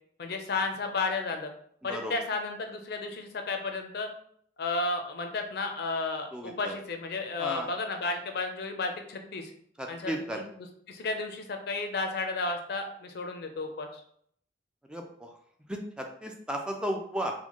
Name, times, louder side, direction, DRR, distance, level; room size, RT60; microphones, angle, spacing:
voice 1, 0.2-1.5 1.8-4.1 4.6-9.5 9.9-14.0, left 3 dB, 60° left, 5 dB, 0.5 m, -33 dB
voice 2, 6.3-6.7 7.4-7.7 9.8-10.4 14.9-15.3 15.7-17.3, right 1 dB, 5° right, 2 dB, 0.3 m, -34 dB
4.3 x 2.1 x 2.9 m, 0.64 s
head